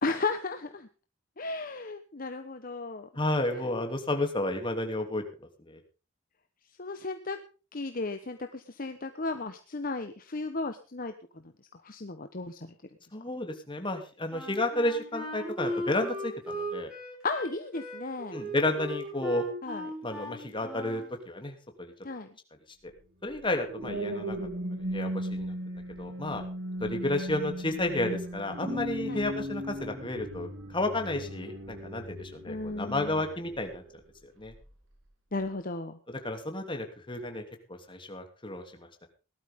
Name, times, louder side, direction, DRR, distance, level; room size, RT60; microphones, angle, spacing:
voice 1, 0.0-0.9 1.4-3.1 6.8-7.4 7.7-11.4 11.8-12.7 17.2-18.4 19.6-19.8 22.0-22.3 29.1-29.2 32.5-33.1 35.3-36.0, left 3 dB, 45° left, 7 dB, 1.1 m, -34 dB
voice 2, 3.1-5.2 5.6-5.8 13.1-16.9 18.3-19.4 20.0-21.9 23.2-24.4 24.9-25.5 26.0-26.4 26.8-33.8 34.4-34.5 36.1-37.4 37.7-39.1, left 1 dB, 25° left, 4 dB, 2.9 m, -32 dB
Wind instrument woodwind instrument, 14.3-21.1, equal, 5° right, 7.7 m, -38 dB
sound 1, 23.3-33.9 34.4-34.7, equal, 70° right, 5.0 m, -37 dB
18.5 x 12.5 x 3.7 m, 0.34 s
head